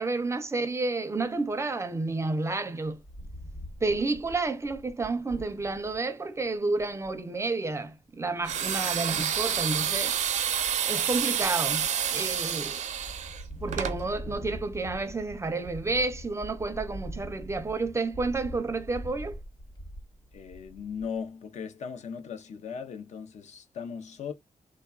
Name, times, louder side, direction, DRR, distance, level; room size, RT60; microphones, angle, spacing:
voice 1, 0.0-3.0 3.8-10.2 10.8-12.8 13.6-19.4, right 3 dB, 20° right, 0.4 m, -30 dB
Wind, 3.0-6.0 6.5-6.6 6.8-7.2 8.6-9.2 9.7-10.2 10.6-11.7 12.2-12.6 12.9-21.2, equal, 40° left, 0.9 m, -43 dB
sound 1, 8.4-14.0, right 8 dB, 80° right, 0.5 m, -29 dB
voice 2, 20.3-24.3, left 6 dB, 70° left, 0.6 m, -38 dB
3.2 x 2.3 x 2.2 m
wide cardioid pair, 135°, 12 cm